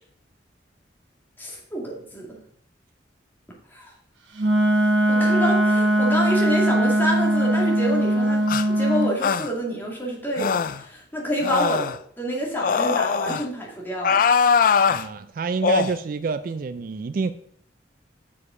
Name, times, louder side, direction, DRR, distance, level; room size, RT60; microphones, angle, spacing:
voice 1, 1.4-2.4 3.7-3.9 5.1-11.9 12.2-14.2, equal, 10° left, -3 dB, 2.1 m, -28 dB
Wind instrument woodwind instrument, 4.4-9.1, right 1 dB, 85° right, 1.1 m, -20 dB
sound 1, 8.5-8.7 9.2-9.5 10.4-10.8 11.4-12.0 12.6-13.4 14.0-15.0 15.6-15.9, left 6 dB, 50° left, 0.3 m, -21 dB
voice 2, 14.9-17.3, right 4 dB, 50° right, 12 dB, 0.3 m, -28 dB
7.2 x 6.6 x 4.9 m, 0.65 s
head